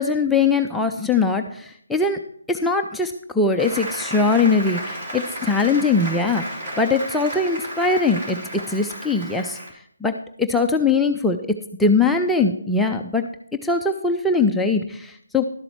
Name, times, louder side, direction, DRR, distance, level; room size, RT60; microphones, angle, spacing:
voice 1, 0.0-2.2 2.5-8.4 8.7-9.6 10.0-13.3 13.6-15.4, left 4 dB, 5° left, 2 dB, 0.4 m, -21 dB
Applause, 3.6-9.7, right 1 dB, 30° right, 3.2 m, -33 dB
12.0 x 7.6 x 4.5 m, 0.66 s
figure-of-eight pair, 150°, 0 cm